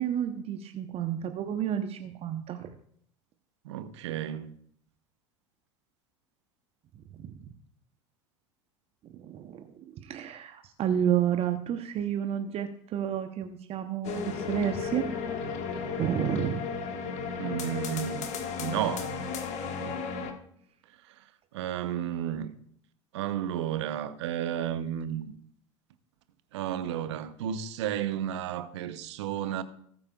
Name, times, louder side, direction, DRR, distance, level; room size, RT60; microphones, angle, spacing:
voice 1, 0.0-2.7 7.1-7.3 9.1-15.1 16.0-16.6, right 9 dB, 40° right, 0.9 m, -31 dB
voice 2, 3.6-4.5 17.4-18.3 18.6-19.1 19.8-20.0 21.5-22.5 23.1-25.3 26.5-29.6, right 10 dB, 65° right, 0.9 m, -32 dB
sound 1, 14.0-20.3, left 5 dB, 45° left, 1.6 m, -34 dB
18.5 x 8.6 x 2.4 m
figure-of-eight pair, 75°, 16 cm